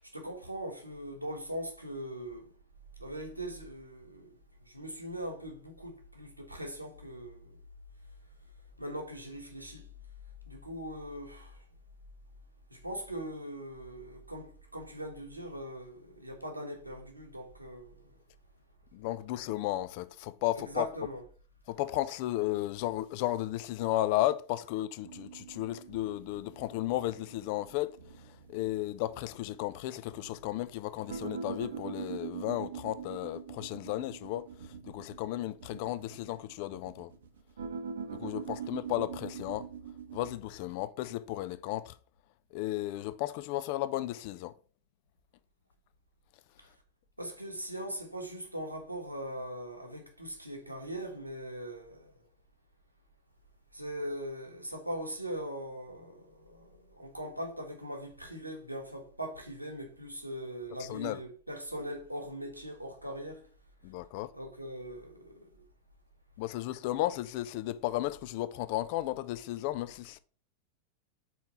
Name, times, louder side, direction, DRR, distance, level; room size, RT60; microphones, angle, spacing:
voice 1, 0.1-2.5 3.0-4.3 4.7-7.5 8.8-9.8 10.5-11.6 12.7-18.0 20.5-21.2 47.2-52.1 53.7-63.5 64.3-65.5, right 1 dB, 85° right, 1.4 m, -40 dB
voice 2, 18.9-20.9 21.7-28.0 28.5-34.5 34.9-37.1 38.1-39.7 40.1-41.9 42.5-44.5 60.8-61.2 63.8-64.3 66.4-70.2, left 15 dB, 45° left, 0.4 m, -34 dB
sound 1, 25.0-40.3, right 6 dB, 65° right, 0.9 m, -43 dB
5.6 x 4.5 x 4.2 m
figure-of-eight pair, 90°, 0 cm